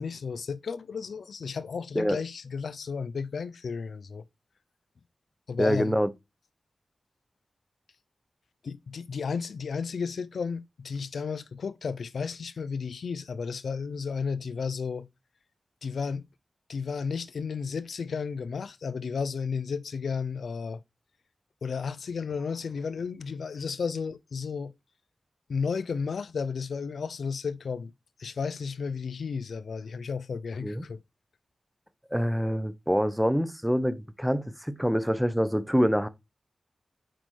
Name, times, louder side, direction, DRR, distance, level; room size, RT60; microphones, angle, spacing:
voice 1, 0.0-4.2 5.5-6.0 8.6-15.1 15.8-16.2 16.7-20.8 21.6-24.7 25.5-27.9 28.2-31.0, left 5 dB, 85° left, 0.4 m, -33 dB
voice 2, 5.6-6.1 30.6-30.8 32.1-36.1, equal, 5° right, 0.8 m, -26 dB
7.5 x 5.2 x 3.2 m
cardioid pair, 45°, 0 cm